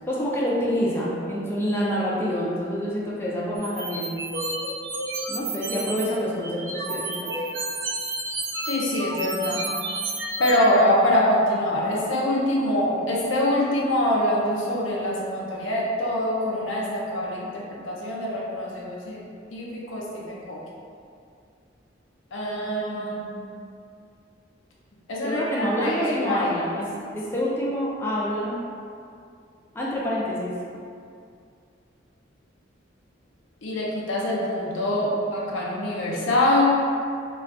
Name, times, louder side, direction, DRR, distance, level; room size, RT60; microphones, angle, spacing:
voice 1, 0.1-4.2 5.3-7.5 25.2-26.9 27.1-28.6 29.7-30.5, equal, 10° left, -7 dB, 0.4 m, -27 dB
sound 1, 3.6-6.1 6.4-10.5, right 2 dB, 65° right, 0.5 m, -31 dB
voice 2, 8.6-9.7 10.4-19.2 19.5-20.6 22.3-23.3 25.1-26.5 33.6-36.8, left 1 dB, 80° left, -4 dB, 0.5 m, -24 dB
2.3 x 2.2 x 3.5 m, 2.4 s
head